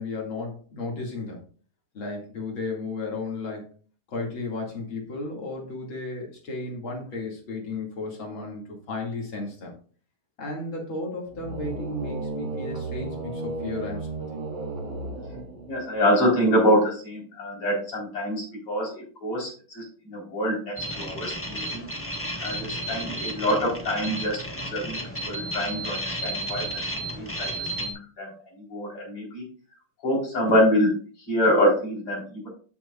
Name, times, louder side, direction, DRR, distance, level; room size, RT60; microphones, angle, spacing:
voice 1, 0.0-1.4 1.9-3.7 4.1-9.8 10.4-14.2, left 3 dB, 65° left, -1 dB, 3.1 m, -34 dB
sound 1, 11.3-16.0, right 2 dB, 65° right, 2.6 m, -34 dB
voice 2, 15.7-21.9 22.4-25.0 25.3-28.3 28.6-29.4 30.0-31.0 31.3-32.5, equal, 80° left, -4 dB, 5.3 m, -25 dB
sound 2, 20.8-27.9, right 1 dB, 10° left, 1.1 m, -33 dB
13.0 x 6.1 x 2.5 m, 0.41 s
omnidirectional pair, 2.4 m